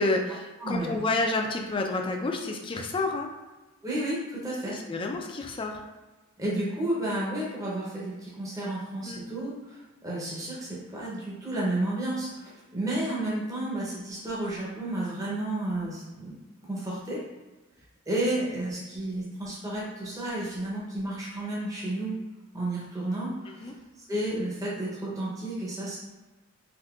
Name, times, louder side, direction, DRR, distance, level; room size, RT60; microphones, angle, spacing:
voice 1, 0.0-3.3 4.6-5.8 9.0-9.2 23.6-23.7, left 2 dB, 25° left, 2 dB, 0.3 m, -29 dB
voice 2, 0.6-0.9 3.8-4.8 6.4-16.4 16.7-17.2 18.1-22.1 22.5-23.7 24.1-26.0, right 1 dB, 15° right, -6 dB, 0.6 m, -32 dB
3.6 x 2.5 x 2.3 m, 1.2 s
head